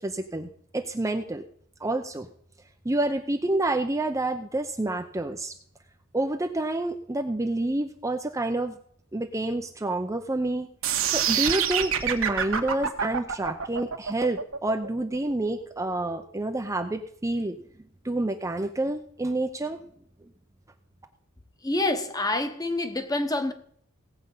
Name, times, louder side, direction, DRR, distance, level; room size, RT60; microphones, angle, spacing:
voice 1, 0.0-1.4 1.8-2.3 2.8-5.5 6.1-8.8 9.1-10.7 11.1-17.6 18.0-19.8, right 2 dB, 15° right, 0.6 m, -28 dB
sound 1, 10.8-16.9, right 8 dB, 70° right, 1.4 m, -27 dB
voice 2, 21.6-23.5, left 2 dB, 20° left, 1.2 m, -27 dB
17.0 x 7.9 x 5.6 m
head